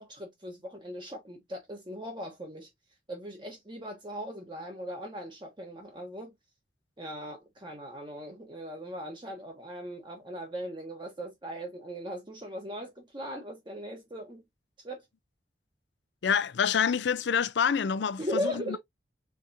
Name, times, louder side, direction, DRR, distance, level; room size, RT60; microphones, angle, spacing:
voice 1, 0.0-2.7 3.1-6.3 7.0-14.4 14.8-15.0 18.2-18.8, equal, 25° right, 1.2 m, -38 dB
voice 2, 16.2-18.8, left 7 dB, 80° left, 0.5 m, -27 dB
5.1 x 3.8 x 2.7 m
head